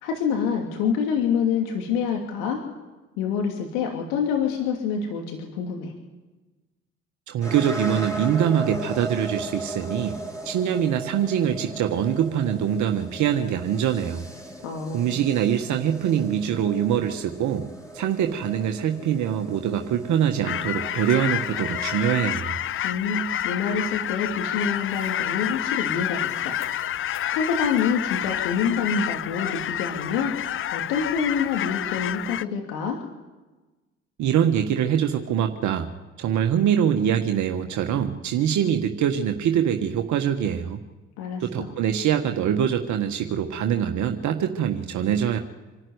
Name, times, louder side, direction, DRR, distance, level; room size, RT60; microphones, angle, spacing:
voice 1, 0.0-2.6 3.2-5.9 14.6-15.2 22.8-26.6 27.3-33.0 41.2-41.7, left 6 dB, 70° left, 2 dB, 2.7 m, -27 dB
voice 2, 7.3-10.2 10.4-14.2 14.9-17.6 17.9-22.6 34.2-35.9 36.2-40.8 41.4-45.4, right 9 dB, 55° right, 5 dB, 1.5 m, -24 dB
sound 1, 7.4-22.4, right 1 dB, 10° left, 5.0 m, -38 dB
sound 2, 20.4-32.4, left 11 dB, 40° left, 0.6 m, -29 dB
26.5 x 12.5 x 9.5 m, 1.2 s
hypercardioid pair, 50°, 34 cm